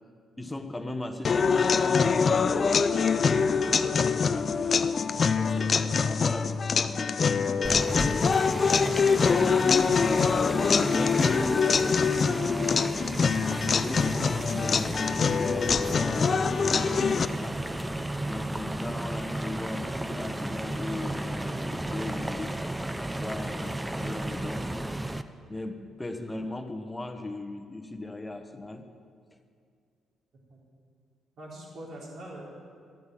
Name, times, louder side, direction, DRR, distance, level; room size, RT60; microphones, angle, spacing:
voice 1, 0.4-5.2 5.7-7.2 9.2-10.0 10.7-13.1 13.8-17.7 18.3-22.6 23.2-24.7 25.5-28.9, left 2 dB, 15° left, 6 dB, 1.1 m, -37 dB
sound 1, 1.2-17.3, left 5 dB, 45° left, 0.4 m, -24 dB
voice 2, 5.2-6.1 7.5-7.8 8.8-9.2 30.5-30.6 31.4-32.4, right 1 dB, 60° right, -3 dB, 3.9 m, -43 dB
sound 2, 7.6-25.2, right 1 dB, 10° right, 0.6 m, -33 dB
13.0 x 9.4 x 7.7 m, 2.2 s
cardioid pair, 90°, 0 cm